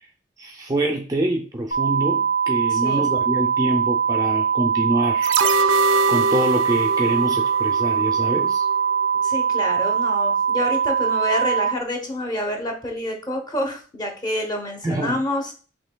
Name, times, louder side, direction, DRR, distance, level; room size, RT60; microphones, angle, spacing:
voice 1, 0.4-5.3 5.7-5.8 6.1-8.7 14.8-15.2, right 1 dB, 20° right, 2 dB, 0.4 m, -25 dB
sound 1, 1.7-11.7, right 7 dB, 50° left, 0.5 m, -22 dB
voice 2, 2.7-3.1 9.2-15.5, left 1 dB, 20° left, 2 dB, 0.8 m, -28 dB
sound 2, 5.2-8.4 8.7-8.8, right 3 dB, 80° right, 0.4 m, -23 dB
5.4 x 3.1 x 2.2 m, 0.38 s
head